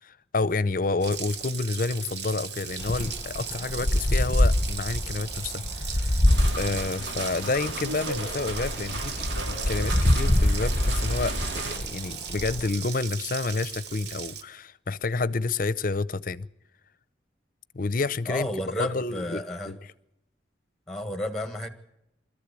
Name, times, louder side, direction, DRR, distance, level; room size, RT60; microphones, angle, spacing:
voice 1, 0.0-6.2 6.6-9.2 9.5-16.5 17.7-18.5 18.8-19.8, left 3 dB, 50° left, 0.7 m, -29 dB
Water tap faucet, 1.0-14.4, right 8 dB, 65° right, 1.2 m, -38 dB
Wind, 2.8-12.7, left 1 dB, 25° left, 1.0 m, -26 dB
sound 1, 6.3-11.8, right 2 dB, 80° right, 3.6 m, -35 dB
voice 2, 18.3-19.7 20.9-21.7, left 1 dB, ahead, 1.7 m, -31 dB
24.5 x 14.0 x 8.4 m
head